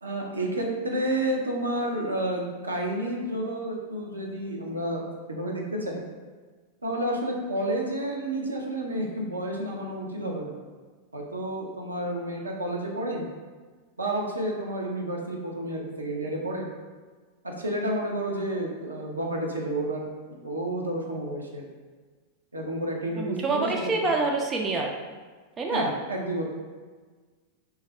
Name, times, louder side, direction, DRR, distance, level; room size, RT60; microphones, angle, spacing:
voice 1, 0.0-5.0 5.3-6.0 6.8-10.5 11.1-13.3 14.0-16.7 17.4-21.6 22.5-24.1 25.7-26.5, right 1 dB, 80° right, -1 dB, 0.6 m, -30 dB
voice 2, 23.2-24.9 25.6-25.9, right 3 dB, 25° right, 1 dB, 0.4 m, -26 dB
3.2 x 2.4 x 4.2 m, 1.4 s
figure-of-eight pair, 90°, 0 cm